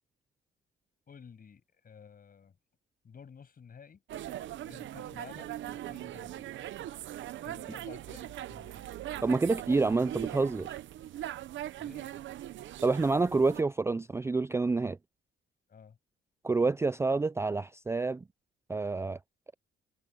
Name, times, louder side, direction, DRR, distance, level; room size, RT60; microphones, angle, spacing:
voice 1, 1.1-2.6 3.0-4.0 4.6-6.5 7.4-9.5 11.8-12.2 15.7-16.0, left 6 dB, 45° left, 7.7 m, -53 dB
sound 1, 4.1-13.6, right 13 dB, 70° right, 0.8 m, -40 dB
voice 2, 9.2-10.7 12.8-15.0 16.4-18.2 18.7-19.2, right 3 dB, 15° right, 0.4 m, -28 dB
cardioid pair, 90°, 20 cm